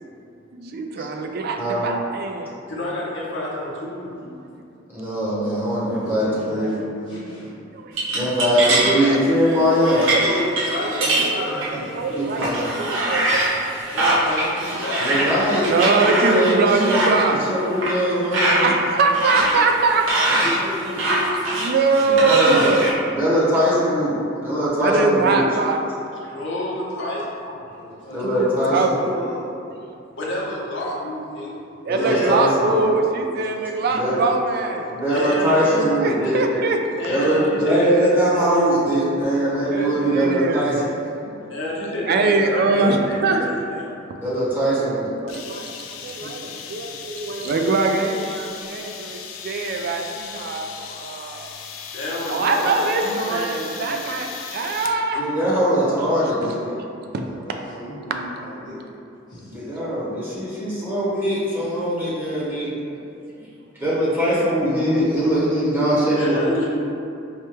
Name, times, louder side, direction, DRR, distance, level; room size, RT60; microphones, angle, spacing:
voice 1, 0.5-2.5 4.2-4.3 7.7-7.9 9.7-10.5 10.8-11.4 11.7-13.6 15.7-17.4 18.6-20.0 21.6-22.9 24.7-26.4 27.4-27.5 28.2-28.9 31.9-34.9 36.0-36.8 39.7-40.7 42.1-43.5 45.2-51.5 52.3-55.2, right 3 dB, 50° right, 3 dB, 0.3 m, -23 dB
voice 2, 2.7-4.1 9.0-9.2 9.9-11.6 12.1-12.4 13.9-15.3 26.2-27.3 30.2-31.5 32.0-32.9 35.1-35.8 36.2-36.3 37.0-38.4 39.6-39.9 41.5-43.9 51.9-54.0 66.1-66.7, left 1 dB, 65° left, -4 dB, 0.7 m, -29 dB
voice 3, 4.9-6.8 8.1-10.1 12.1-12.7 15.0-17.0 17.5-18.7 22.0-22.7 23.1-25.5 28.1-29.1 31.9-32.9 33.9-34.2 34.9-36.4 37.1-40.7 44.2-45.1 55.1-56.6 59.5-62.7 63.8-66.7, equal, 10° right, -9 dB, 0.8 m, -21 dB
voice 4, 6.0-7.5 10.6-11.9 19.9-20.0 20.2-21.5 27.7-29.4 39.8-41.4 45.7-46.8 47.3-47.4 55.6-56.8 57.2-58.8 59.3-59.8, left 1 dB, 35° left, -10 dB, 0.9 m, -35 dB
sound 1, 8.0-9.0 9.5-9.6 9.8-12.0 12.4-17.2 17.8-17.9 18.3-18.7 19.1-22.9, right 1 dB, 75° right, 0.7 m, -22 dB
sound 2, 45.3-55.0, left 7 dB, 80° left, 0.3 m, -37 dB
4.8 x 2.2 x 2.9 m, 2.6 s
head